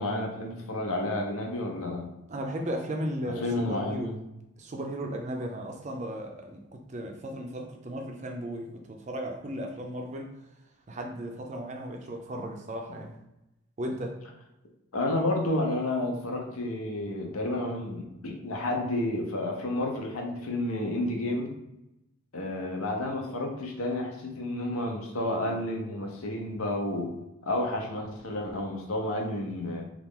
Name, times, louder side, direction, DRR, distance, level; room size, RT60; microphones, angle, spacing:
voice 1, 0.0-2.1 3.2-4.2 14.9-21.5 22.3-27.1 27.4-29.8, left 1 dB, 75° left, 1 dB, 0.7 m, -31 dB
voice 2, 2.3-4.1 4.6-10.3 10.9-13.1 13.8-14.2, right 1 dB, 30° right, 2 dB, 0.4 m, -35 dB
2.9 x 2.4 x 3.6 m, 0.89 s
head